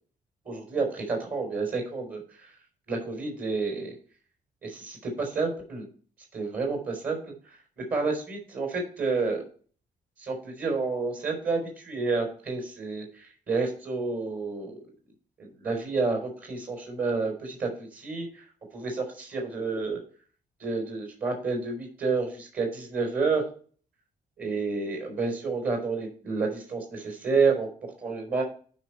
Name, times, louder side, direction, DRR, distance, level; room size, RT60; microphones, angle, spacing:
voice 1, 0.5-2.5 2.9-4.0 4.6-5.9 6.3-7.3 7.8-9.4 10.2-14.7 15.4-18.4 18.7-20.0 20.6-23.4 24.4-28.4, right 4 dB, 45° right, 2 dB, 4.0 m, -29 dB
9.7 x 5.0 x 4.4 m, 0.42 s
hypercardioid pair, 40°, 21 cm